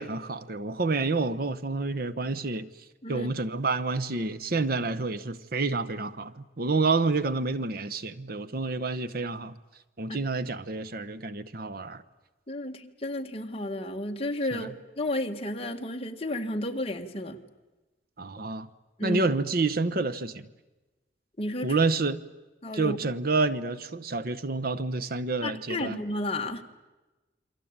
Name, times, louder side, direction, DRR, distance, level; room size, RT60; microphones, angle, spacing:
voice 1, 0.0-2.7 3.1-9.5 10.0-12.0 14.5-14.7 18.2-18.7 19.0-20.5 21.6-22.2 22.7-26.0, right 3 dB, 50° right, 1.0 m, -28 dB
voice 2, 12.5-17.4 19.0-19.2 21.4-21.8 22.6-23.0 25.4-26.7, left 1 dB, 30° left, 1.8 m, -32 dB
28.5 x 23.5 x 8.8 m
head